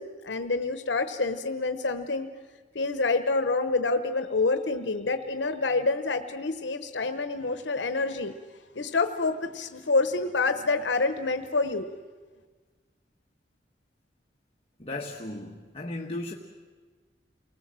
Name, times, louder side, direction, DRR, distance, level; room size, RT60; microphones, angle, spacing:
voice 1, 0.0-2.3 2.7-8.3 8.7-11.9, left 3 dB, 80° left, 9 dB, 0.9 m, -27 dB
voice 2, 14.8-16.3, left 2 dB, 35° left, 1 dB, 1.4 m, -36 dB
28.5 x 19.5 x 7.5 m, 1.4 s
head